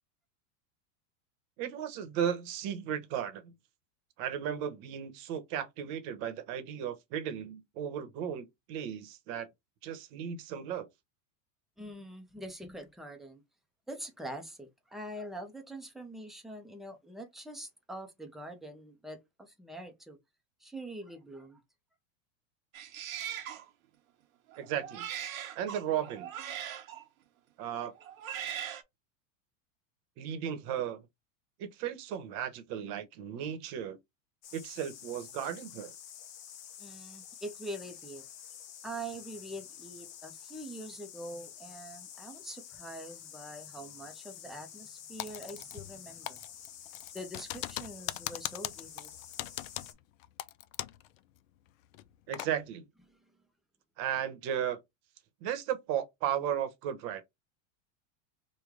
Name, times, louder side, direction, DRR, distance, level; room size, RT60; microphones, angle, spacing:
voice 1, 1.6-3.5 4.2-9.5 9.8-10.9 24.6-25.1 25.5-26.3 27.6-27.9 30.2-31.0 31.6-34.0 34.5-35.9 52.3-52.9 54.0-54.8 55.4-57.3, right 9 dB, 50° right, 0.9 m, -35 dB
voice 2, 11.8-13.4 13.9-20.2 20.6-21.6 36.8-38.2 38.8-46.4 47.1-49.1 53.1-53.2, right 1 dB, ahead, 0.4 m, -44 dB
Male speech man speaking, 22.7-23.7 24.5-27.0 27.9-28.8, right 10 dB, 85° right, 0.9 m, -40 dB
sound 1, 34.4-49.9, left 9 dB, 40° left, 0.8 m, -49 dB
Typing, 45.2-46.0 46.3-51.1 51.4-51.5 51.9-52.5, left 15 dB, 75° left, 0.5 m, -40 dB
3.2 x 2.2 x 3.5 m
supercardioid pair, 135°, 40 cm